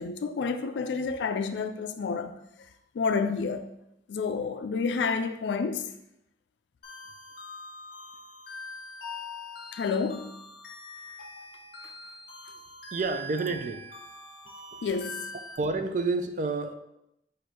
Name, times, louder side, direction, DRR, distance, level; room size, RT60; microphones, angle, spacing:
voice 1, 0.0-2.4 2.9-3.7 4.1-5.9 9.7-10.4 14.8-15.3, left 5 dB, 80° left, 0.4 m, -29 dB
sound 1, 6.8-15.6, left 2 dB, 55° left, 0.8 m, -43 dB
voice 2, 12.9-13.8 15.6-16.7, right 3 dB, 45° right, 0.4 m, -29 dB
4.3 x 2.5 x 4.6 m
head